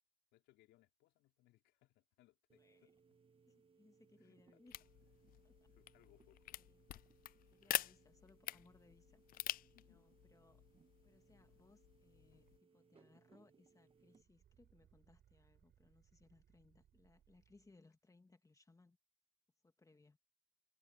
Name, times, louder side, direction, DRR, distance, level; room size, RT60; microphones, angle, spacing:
voice 1, 0.3-3.2 4.2-4.6 5.7-6.5 9.7-10.2, left 17 dB, 75° left, 4.5 m, -72 dB
sound 1, 2.5-14.2, right 5 dB, 30° right, 1.6 m, -71 dB
voice 2, 2.6-2.9 3.5-4.8 5.4-5.7 6.7-6.9 7.5-9.2 9.8-10.6 11.0-19.0 19.6-20.2, left 3 dB, 15° left, 2.2 m, -68 dB
sound 2, 4.7-12.6, left 14 dB, 50° left, 0.4 m, -47 dB
sound 3, 12.5-12.6 12.9-13.5 13.8-17.8, right 10 dB, 55° right, 7.5 m, -72 dB
supercardioid pair, 80°, 19 cm